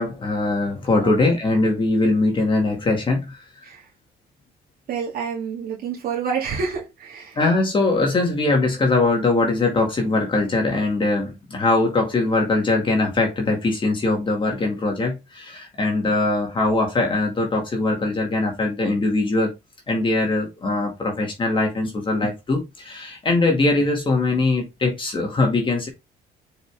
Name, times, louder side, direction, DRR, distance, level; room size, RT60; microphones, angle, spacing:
voice 1, 0.0-3.6 7.4-19.5 19.9-25.9, left 2 dB, 30° left, 2.2 m, -21 dB
voice 2, 4.9-7.4, right 6 dB, 60° right, 2.1 m, -28 dB
6.3 x 5.0 x 3.5 m
cardioid pair, 110°, 17 cm